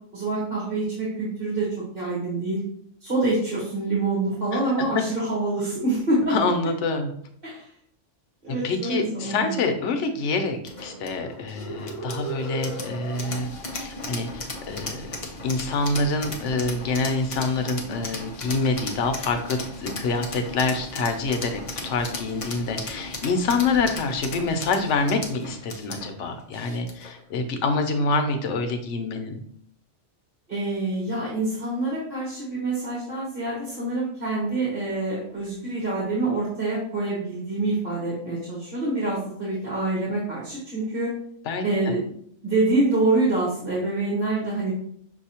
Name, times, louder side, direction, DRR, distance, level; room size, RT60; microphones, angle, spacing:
voice 1, 0.1-1.7 1.9-2.6 3.0-6.4 7.4-7.7 8.4-9.6 30.5-41.1 41.6-42.1 42.4-44.7, right 2 dB, 50° right, -6 dB, 1.5 m, -26 dB
voice 2, 6.3-7.1 8.6-15.1 15.4-29.4 41.4-41.7, left 3 dB, 85° left, 6 dB, 1.0 m, -26 dB
sound 1, 10.6-27.2, left 1 dB, 35° left, 0.7 m, -36 dB
6.1 x 2.7 x 2.8 m, 0.65 s
omnidirectional pair, 1.2 m